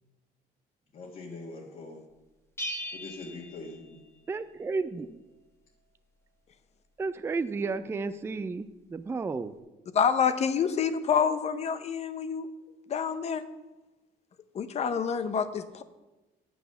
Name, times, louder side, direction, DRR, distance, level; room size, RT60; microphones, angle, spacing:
voice 1, 0.9-2.0 2.9-4.0, left 3 dB, 55° left, -4 dB, 1.7 m, -42 dB
Bell, 2.6-4.4, equal, 15° left, 1.4 m, -39 dB
voice 2, 4.3-5.2 7.0-9.5, right 4 dB, 15° right, 11 dB, 0.4 m, -32 dB
voice 3, 9.9-12.5 12.9-13.4 14.5-15.8, left 7 dB, 40° left, 11 dB, 0.7 m, -27 dB
9.2 x 6.2 x 6.7 m, 1.1 s
cardioid pair, 125°, 17 cm